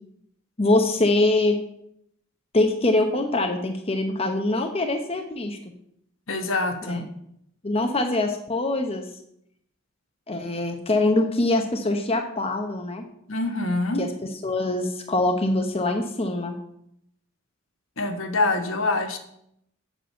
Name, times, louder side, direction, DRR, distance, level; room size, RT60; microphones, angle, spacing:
voice 1, 0.6-1.6 2.5-5.6 6.8-7.0 7.6-9.1 10.3-13.1 14.0-14.1 14.4-16.5, left 2 dB, 30° left, 4 dB, 0.9 m, -23 dB
voice 2, 6.3-7.0 13.3-14.0 18.0-19.2, left 2 dB, 70° left, 6 dB, 1.4 m, -25 dB
7.8 x 6.1 x 7.9 m, 0.74 s
head